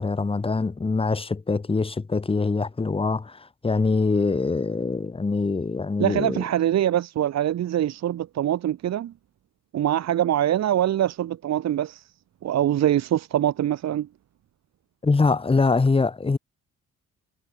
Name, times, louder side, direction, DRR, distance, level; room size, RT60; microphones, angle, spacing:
voice 1, 0.0-6.4 15.0-16.4, left 4 dB, 20° left, 1.1 m, -24 dB
voice 2, 6.0-9.1 9.7-12.0 12.4-14.1, right 11 dB, 60° right, 1.1 m, -23 dB
cardioid pair, 90°, 30 cm